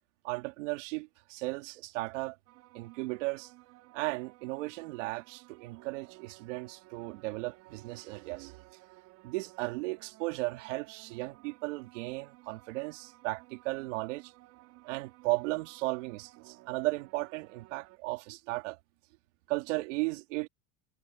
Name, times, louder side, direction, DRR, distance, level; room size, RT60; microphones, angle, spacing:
voice 1, 0.2-2.4 2.7-3.5 3.9-8.6 9.2-14.3 14.8-18.8 19.5-20.5, right 23 dB, 75° right, 2.2 m, -35 dB
sound 1, 2.5-18.0, right 20 dB, 50° right, 5.1 m, -57 dB
supercardioid pair, 165°, 38 cm